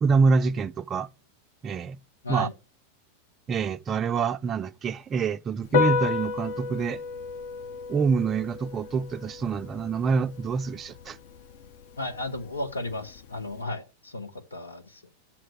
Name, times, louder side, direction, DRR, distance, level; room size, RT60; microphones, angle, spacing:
voice 1, 0.0-1.1 1.6-2.0 2.3-2.5 3.5-7.0 7.9-11.2, right 5 dB, 25° right, 0.4 m, -26 dB
Piano, 5.6-13.6, left 6 dB, 55° left, 0.9 m, -32 dB
voice 2, 12.0-15.1, left 2 dB, 80° left, 1.3 m, -34 dB
7.6 x 6.0 x 7.8 m
figure-of-eight pair, 90°, 0 cm